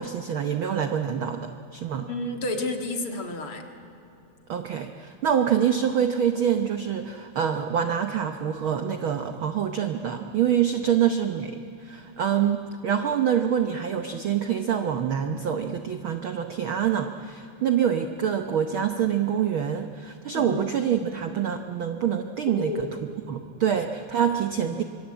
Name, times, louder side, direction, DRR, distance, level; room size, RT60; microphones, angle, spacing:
voice 1, 0.0-2.1 4.5-22.9 23.3-24.8, right 8 dB, 70° right, 7 dB, 1.2 m, -26 dB
voice 2, 2.0-3.6 20.3-20.6 22.5-22.8 24.4-24.8, left 2 dB, 50° left, 4 dB, 2.5 m, -31 dB
25.0 x 23.0 x 8.8 m, 2.8 s
omnidirectional pair, 3.5 m